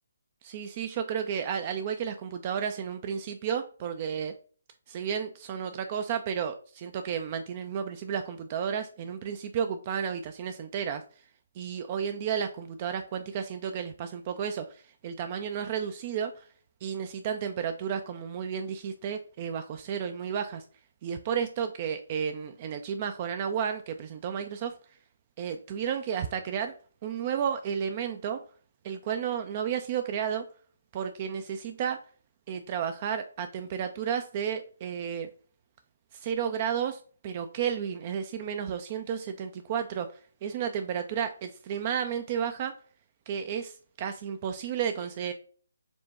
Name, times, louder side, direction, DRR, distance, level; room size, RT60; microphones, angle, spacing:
voice 1, 0.4-4.3 4.9-11.0 11.6-16.5 16.8-20.6 21.0-24.7 25.4-26.7 27.0-28.4 28.8-30.4 30.9-32.0 32.5-35.3 36.1-40.1 40.4-42.7 43.3-45.3, right 8 dB, 30° right, 7 dB, 0.3 m, -32 dB
4.3 x 2.1 x 4.1 m, 0.43 s
figure-of-eight pair, 145°, 0 cm